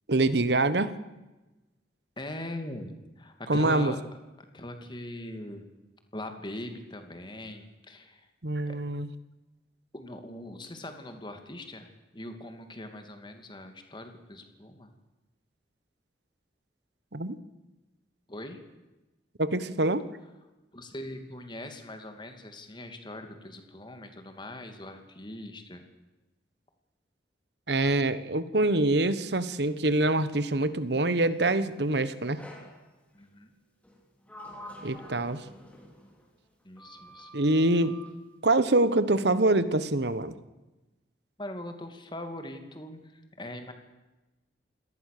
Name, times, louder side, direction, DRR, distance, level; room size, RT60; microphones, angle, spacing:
voice 1, 0.1-0.9 3.5-3.9 8.4-9.1 17.1-17.4 19.4-20.0 27.7-32.4 34.8-35.4 37.3-38.0 38.4-40.3, right 2 dB, 65° right, 14 dB, 1.3 m, -25 dB
voice 2, 2.2-4.0 4.5-5.6 6.1-8.3 8.7-8.8 9.9-14.9 18.3-18.6 20.7-25.8 33.1-33.5 36.6-37.3 41.4-43.7, left 1 dB, 25° left, 6 dB, 2.6 m, -41 dB
Sliding door, 32.4-32.8 33.8-36.3 36.8-38.2, equal, 10° left, 3.9 m, -47 dB
27.5 x 18.5 x 6.8 m, 1.1 s
head